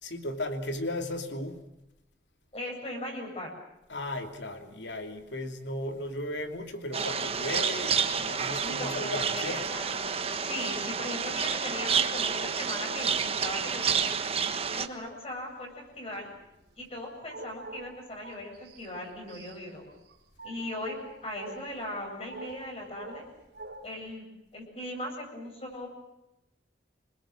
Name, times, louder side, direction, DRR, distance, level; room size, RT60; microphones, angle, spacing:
voice 1, 0.0-1.6 3.9-9.6, left 1 dB, 75° left, 6 dB, 2.9 m, -36 dB
voice 2, 2.5-3.5 8.6-14.1 14.7-16.3 16.8-19.9 20.4-23.2 23.8-24.3 24.5-25.9, left 1 dB, 35° left, 1 dB, 8.0 m, -39 dB
sound 1, 5.8-6.4 6.7-14.4 14.8-15.5 16.0-24.1, right 2 dB, 60° right, 4.6 m, -47 dB
sound 2, 6.9-14.9, right 6 dB, 35° right, 1.3 m, -29 dB
27.5 x 21.0 x 7.6 m, 0.92 s
head